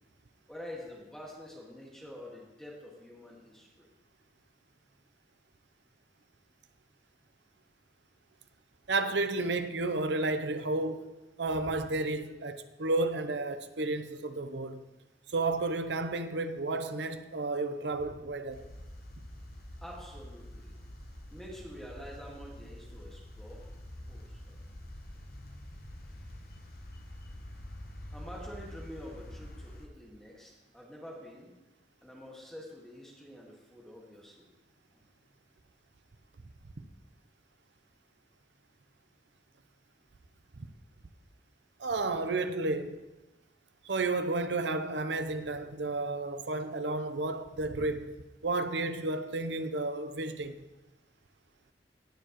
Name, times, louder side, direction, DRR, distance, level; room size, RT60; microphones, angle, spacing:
voice 1, 0.5-3.9 19.8-20.8 21.3-23.7 24.1-24.6 28.1-31.5 32.0-34.5 34.9-35.1, equal, 5° left, 1.7 m, -47 dB
voice 2, 8.9-11.1 11.4-14.8 15.3-18.6 40.6-40.7 41.8-43.0 43.8-48.2 48.4-50.5, right 2 dB, 80° right, 0.7 m, -32 dB
sound 1, 18.5-29.9, left 1 dB, 55° left, 1.1 m, -46 dB
18.0 x 6.7 x 3.0 m
head